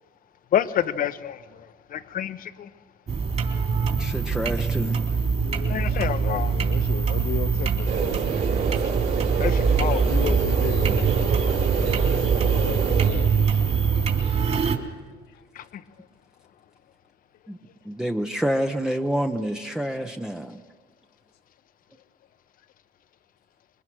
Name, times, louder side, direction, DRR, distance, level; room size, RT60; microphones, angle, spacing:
voice 1, 0.5-2.7 5.7-6.5 9.4-10.1 15.5-15.6, left 10 dB, 55° left, 1.1 m, -28 dB
sound 1, 3.1-14.8, right 5 dB, 40° right, 3.4 m, -23 dB
voice 2, 3.7-5.0 17.5-17.6 17.8-20.6, equal, 5° right, 0.9 m, -28 dB
voice 3, 5.4-8.5 9.8-11.3 12.5-13.8 15.3-15.4 16.0-16.1, left 12 dB, 80° left, 0.8 m, -36 dB
sound 2, 7.9-13.1, right 6 dB, 65° right, 5.5 m, -28 dB
27.0 x 22.0 x 6.2 m
cardioid pair, 110°, 17 cm